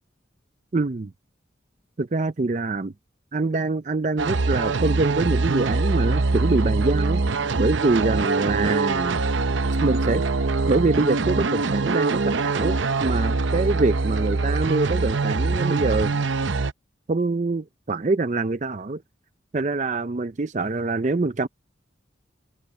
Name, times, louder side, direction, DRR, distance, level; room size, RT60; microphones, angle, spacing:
voice 1, 0.7-1.1 2.0-2.9 3.3-7.2 7.6-9.2 9.8-10.2 10.7-16.2 17.1-19.0 19.5-21.5, right 3 dB, 40° right, 0.5 m, -24 dB
sound 1, 4.2-16.7, right 3 dB, 80° right, 0.7 m, -23 dB
head